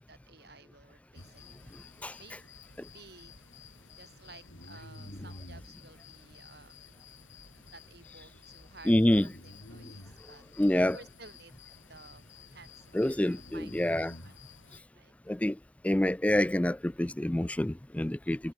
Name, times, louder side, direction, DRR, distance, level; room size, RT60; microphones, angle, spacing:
voice 1, 0.1-1.8 2.2-2.4 2.9-3.4 3.9-6.8 7.7-10.4 10.7-14.4 14.9-15.1, right 3 dB, 55° right, 6.3 m, -55 dB
sound 1, 1.1-14.8, left 3 dB, 80° left, 5.8 m, -51 dB
voice 2, 8.9-9.3 10.6-11.0 12.9-14.1 15.3-15.5 15.8-18.4, left 1 dB, 5° left, 0.3 m, -26 dB
head